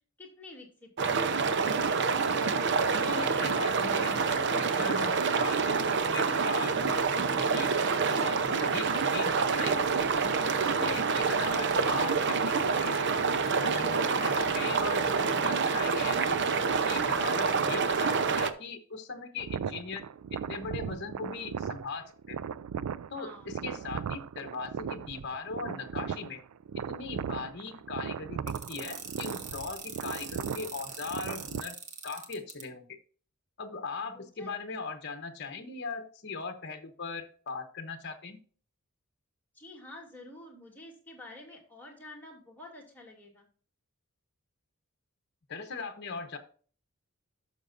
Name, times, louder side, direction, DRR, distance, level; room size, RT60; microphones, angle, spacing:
voice 1, 0.2-1.2 14.0-14.3 23.2-23.5 34.1-34.8 39.5-43.5, left 2 dB, 10° left, -2 dB, 2.6 m, -49 dB
sound 1, 1.0-18.5, right 5 dB, 55° right, 0.7 m, -27 dB
voice 2, 3.1-7.8 8.1-10.1 10.6-13.0 13.5-16.3 16.7-20.0 20.3-22.4 23.1-26.4 26.8-31.7 32.0-33.0 33.6-38.4 45.5-46.4, left 4 dB, 50° left, 7 dB, 1.0 m, -39 dB
sound 2, 19.4-31.6, right 7 dB, 85° right, 0.4 m, -37 dB
sound 3, 28.5-32.6, right 5 dB, 35° right, 1.6 m, -42 dB
12.0 x 6.8 x 2.6 m, 0.43 s
head